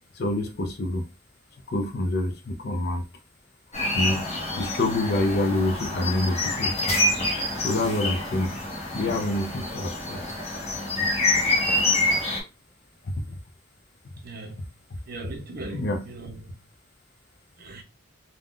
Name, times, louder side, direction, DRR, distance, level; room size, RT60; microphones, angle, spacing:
voice 1, 0.2-1.0 1.7-3.0 3.9-6.8 7.6-8.6 8.9-10.2 13.0-13.4 15.7-16.1, left 2 dB, 50° left, 0.5 m, -27 dB
sound 1, 3.7-12.4, left 2 dB, 30° left, 0.8 m, -26 dB
voice 2, 14.2-14.7 15.1-16.6 17.6-17.8, right 2 dB, 45° right, 0.6 m, -39 dB
2.4 x 2.2 x 3.5 m
head